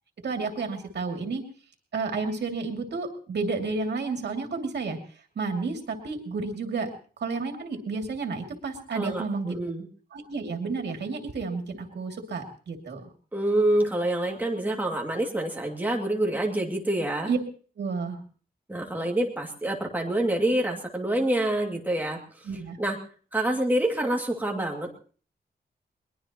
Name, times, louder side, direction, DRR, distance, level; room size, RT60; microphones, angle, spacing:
voice 1, 0.2-1.4 1.9-5.0 5.4-6.9 7.2-9.6 10.1-13.1 17.3-17.4 17.8-18.2 22.5-22.8, right 4 dB, 85° right, 4 dB, 2.6 m, -31 dB
voice 2, 8.9-9.9 13.3-17.3 18.7-22.5 22.8-23.0 23.3-25.0, right 1 dB, 10° right, 1 dB, 2.4 m, -27 dB
21.5 x 21.0 x 3.0 m, 0.40 s
wide cardioid pair, 170°, 17 cm